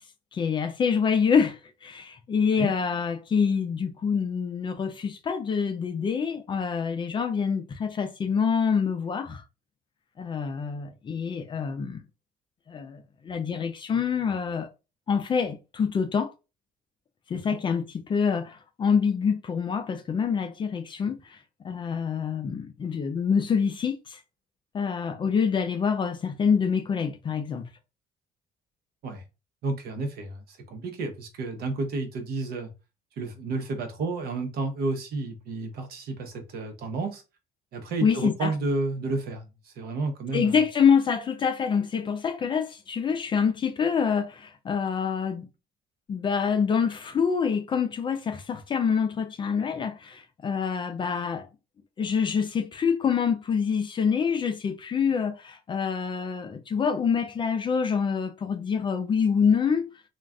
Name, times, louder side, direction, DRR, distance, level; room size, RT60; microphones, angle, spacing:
voice 1, 0.3-9.4 10.2-12.0 12.7-14.7 15.1-16.3 17.3-21.4 21.6-24.2 24.7-27.6 38.0-38.5 40.3-45.5 46.1-51.5 52.0-59.9, left 6 dB, 30° left, 0.4 m, -26 dB
voice 2, 29.6-32.7 33.2-37.2 37.7-40.6, right 3 dB, 65° right, 0.8 m, -31 dB
2.4 x 2.2 x 3.4 m
cardioid pair, 140°, 17 cm